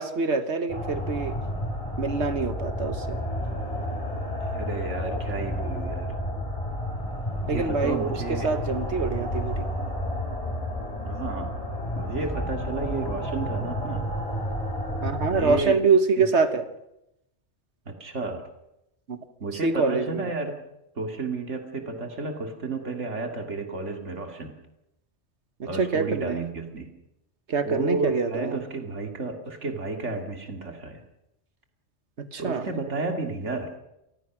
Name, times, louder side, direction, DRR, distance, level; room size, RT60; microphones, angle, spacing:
voice 1, 0.0-1.3 2.0-3.2 7.5-9.7 15.0-16.7 19.1-19.2 19.5-20.3 25.6-26.4 27.5-28.6 32.2-32.7, right 4 dB, 70° right, 10 dB, 1.7 m, -25 dB
sound 1, 0.7-15.7, equal, 30° left, 8.2 m, -31 dB
voice 2, 4.4-6.1 7.4-8.5 11.0-11.6 11.9-14.0 15.3-15.8 16.2-16.3 17.9-18.5 19.4-20.6 21.0-24.5 25.6-26.9 27.6-31.0 32.4-33.7, right 3 dB, 90° right, 4 dB, 2.7 m, -32 dB
27.0 x 20.0 x 6.1 m, 0.86 s
omnidirectional pair, 1.2 m